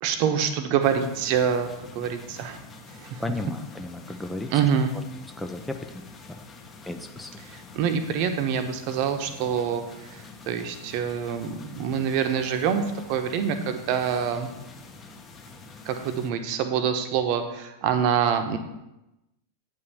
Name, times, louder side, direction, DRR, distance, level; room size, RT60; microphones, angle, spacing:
voice 1, 0.0-2.6 2.9-3.2 4.5-4.9 7.4-12.8 13.1-14.5 15.8-18.6, right 7 dB, 45° right, 7 dB, 1.1 m, -26 dB
sound 1, 0.8-16.3, left 3 dB, 25° left, 1.4 m, -46 dB
voice 2, 3.2-4.5 5.4-6.4 6.9-7.4, left 2 dB, 5° left, 6 dB, 0.7 m, -34 dB
8.7 x 5.6 x 6.9 m, 0.94 s
figure-of-eight pair, 90°, 0 cm